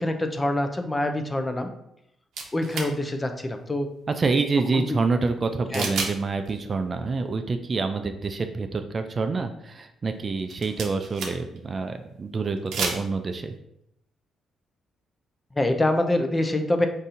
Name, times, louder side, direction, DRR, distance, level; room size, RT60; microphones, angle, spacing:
voice 1, 0.0-1.7 2.5-3.9 4.7-4.8 5.7-5.9 15.6-16.9, left 1 dB, 20° left, 6 dB, 0.5 m, -25 dB
sound 1, 2.3-2.9 5.7-6.2 6.5-6.6 10.4-11.6 12.6-13.0, right 4 dB, 75° right, 0.7 m, -30 dB
voice 2, 4.1-13.5, right 4 dB, 35° right, 7 dB, 0.3 m, -27 dB
4.1 x 2.7 x 3.7 m, 0.76 s
cardioid pair, 90°, 0 cm